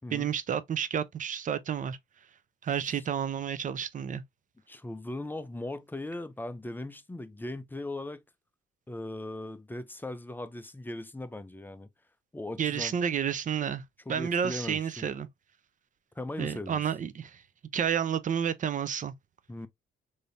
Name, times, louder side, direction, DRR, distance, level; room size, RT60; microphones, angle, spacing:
voice 1, 0.1-2.0 2.6-4.2 12.6-13.8 14.1-15.3 16.4-17.4 17.7-19.1, right 8 dB, 40° right, 0.5 m, -30 dB
voice 2, 4.7-8.2 8.9-11.9 12.3-12.9 14.1-15.0 16.2-16.8 19.5-19.7, left 2 dB, 10° left, 0.5 m, -39 dB
3.3 x 2.7 x 2.5 m
cardioid pair, 90°, 20 cm